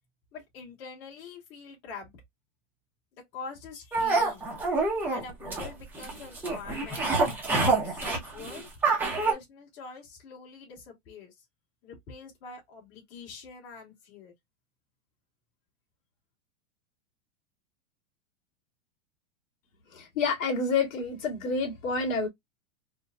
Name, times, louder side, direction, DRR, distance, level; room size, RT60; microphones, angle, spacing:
voice 1, 0.3-2.1 3.3-4.5 5.1-8.7 9.2-11.3 11.8-14.3, left 4 dB, 45° left, 2.2 m, -44 dB
sound 1, 3.9-9.3, right 3 dB, 5° right, 0.7 m, -27 dB
voice 2, 19.9-22.3, left 4 dB, 65° left, 2.4 m, -28 dB
4.3 x 2.8 x 2.3 m
supercardioid pair, 160°, 42 cm